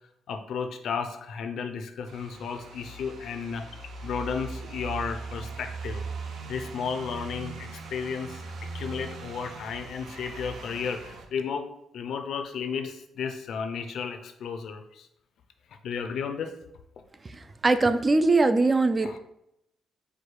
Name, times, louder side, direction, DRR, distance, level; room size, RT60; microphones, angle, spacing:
voice 1, 0.3-6.0 6.5-8.4 8.7-11.7 11.9-15.1 15.8-16.5 19.0-19.2, left 6 dB, 70° left, 7 dB, 0.5 m, -33 dB
sound 1, 2.1-11.2, right 4 dB, 70° right, 0.7 m, -40 dB
voice 2, 17.6-19.2, right 3 dB, 30° right, 10 dB, 0.3 m, -21 dB
4.8 x 2.2 x 4.6 m, 0.81 s
cardioid pair, 100°, 0 cm